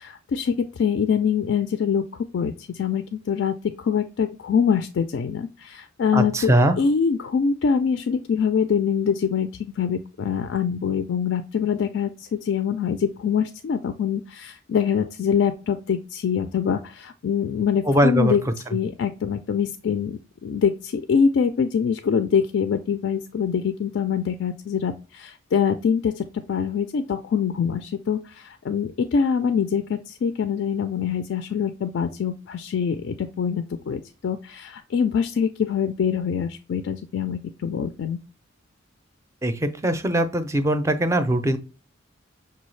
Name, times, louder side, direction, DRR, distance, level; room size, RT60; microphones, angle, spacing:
voice 1, 0.0-2.0 2.3-18.4 18.7-38.2, left 7 dB, 65° left, 9 dB, 0.3 m, -24 dB
voice 2, 6.1-6.8 17.9-18.3 39.4-41.6, right 1 dB, 15° right, 9 dB, 0.4 m, -21 dB
6.1 x 2.3 x 3.1 m, 0.34 s
head